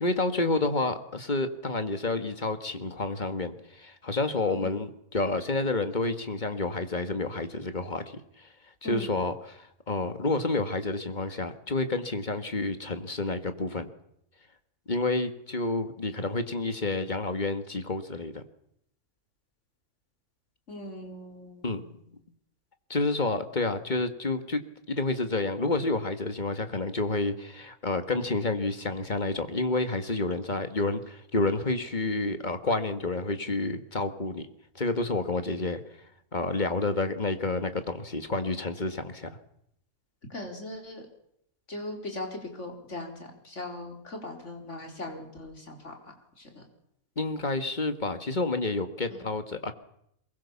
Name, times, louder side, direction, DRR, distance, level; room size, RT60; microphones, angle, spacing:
voice 1, 0.0-8.5 8.8-13.9 14.9-18.4 21.6-21.8 22.9-24.6 24.9-34.5 34.8-35.8 36.3-39.3 47.2-49.7, left 2 dB, 30° left, 9 dB, 1.9 m, -29 dB
voice 2, 8.8-9.2 20.7-21.9 40.3-41.0 41.7-46.6, left 1 dB, 55° left, 3 dB, 4.7 m, -39 dB
23.0 x 20.5 x 7.2 m, 0.75 s
omnidirectional pair, 1.5 m